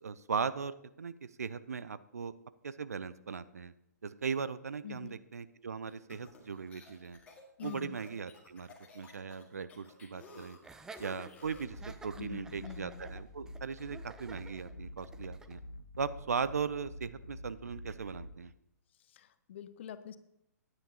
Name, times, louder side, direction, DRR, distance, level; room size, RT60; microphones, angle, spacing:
voice 1, 0.0-1.1 1.4-2.3 2.6-3.7 4.0-7.2 7.6-10.6 11.0-15.6 16.0-18.5, right 5 dB, 65° right, 15 dB, 0.5 m, -38 dB
voice 2, 4.8-5.2 7.6-8.0 12.2-13.0 19.1-20.2, left 10 dB, 45° left, 13 dB, 0.7 m, -45 dB
sound 1, 5.9-11.8, left 4 dB, 15° left, 1.7 m, -55 dB
Laughter, 10.6-15.6, right 4 dB, 5° right, 0.5 m, -52 dB
sound 2, 11.4-18.3, left 1 dB, 75° left, 1.2 m, -48 dB
16.0 x 9.8 x 2.8 m, 0.81 s
figure-of-eight pair, 120°, 9 cm